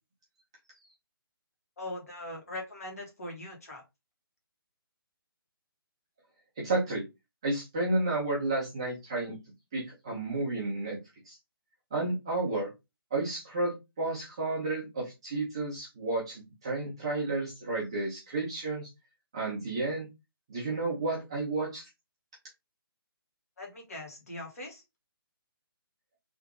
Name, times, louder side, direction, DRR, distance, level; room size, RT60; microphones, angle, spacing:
voice 1, 1.8-3.8 23.6-24.8, left 1 dB, 40° left, 0 dB, 1.6 m, -41 dB
voice 2, 6.6-7.0 7.4-9.3 9.7-11.0 11.2-11.4 11.9-12.7 13.1-18.9 19.3-20.1 20.5-21.9, right 2 dB, 10° right, -5 dB, 0.6 m, -31 dB
3.4 x 2.8 x 3.7 m, 0.23 s
hypercardioid pair, 180°, 12 cm